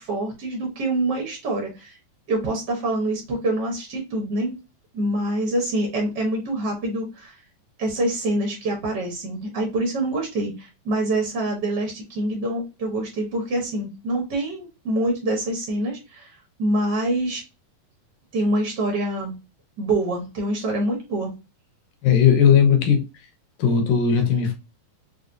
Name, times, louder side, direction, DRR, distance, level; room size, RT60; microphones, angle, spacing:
voice 1, 0.0-2.0 2.3-4.6 4.9-7.4 7.8-16.3 16.6-17.4 18.3-19.4 19.8-21.3, right 1 dB, 90° right, 0.9 m, -25 dB
voice 2, 22.0-23.0 23.6-24.5, left 7 dB, 80° left, 2.6 m, -17 dB
6.0 x 2.3 x 2.6 m
omnidirectional pair, 4.0 m